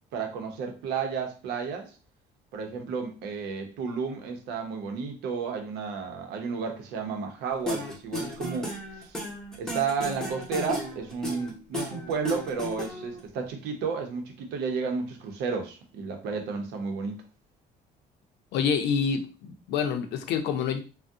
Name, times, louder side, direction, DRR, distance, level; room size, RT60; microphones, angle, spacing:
voice 1, 0.1-1.9 2.5-9.2 9.6-17.1, right 5 dB, 85° right, 0.7 m, -32 dB
sound 1, 7.7-13.2, left 1 dB, 5° left, 1.0 m, -34 dB
voice 2, 18.5-20.8, left 6 dB, 85° left, 0.5 m, -27 dB
3.4 x 2.1 x 2.7 m
cardioid pair, 110°, 17 cm